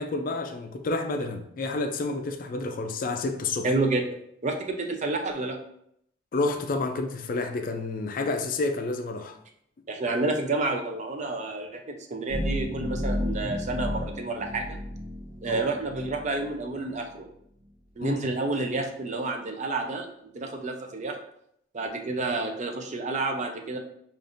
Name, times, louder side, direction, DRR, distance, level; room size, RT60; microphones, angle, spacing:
voice 1, 0.0-3.7 6.3-9.4 15.5-15.6 18.0-18.2, left 3 dB, 45° left, 0.4 m, -29 dB
voice 2, 3.6-4.0 4.4-5.6 9.9-14.8 15.4-17.3 18.0-20.1 20.3-21.2 21.7-23.8, right 2 dB, 40° right, 0.5 m, -29 dB
sound 1, 12.3-17.1, left 1 dB, 85° right, 0.8 m, -33 dB
5.1 x 2.5 x 2.5 m
head